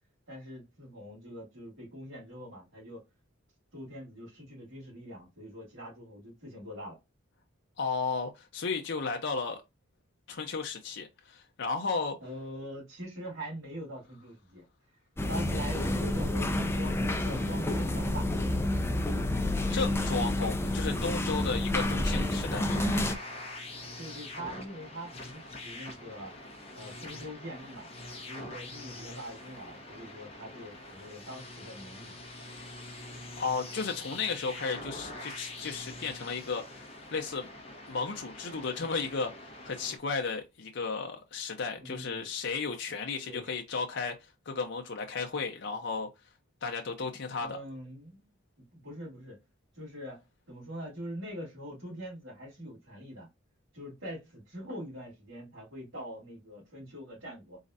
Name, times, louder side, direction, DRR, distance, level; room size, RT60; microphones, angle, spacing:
voice 1, 0.3-3.0 3.7-7.0 12.2-14.6 15.3-18.3 23.6-26.3 26.7-27.9 28.3-32.1 41.7-42.3 43.2-43.5 47.4-48.3 48.7-49.4 49.7-53.3 53.7-57.6, equal, 65° right, 2.9 m, -43 dB
voice 2, 7.8-9.6 10.3-12.2 19.7-23.0 33.4-37.5 37.9-46.1 46.6-47.6, left 4 dB, 60° left, 0.7 m, -34 dB
sound 1, 15.2-23.1, left 1 dB, 10° left, 0.5 m, -29 dB
sound 2, 22.7-40.0, left 2 dB, 30° left, 1.1 m, -44 dB
4.1 x 3.8 x 2.6 m
head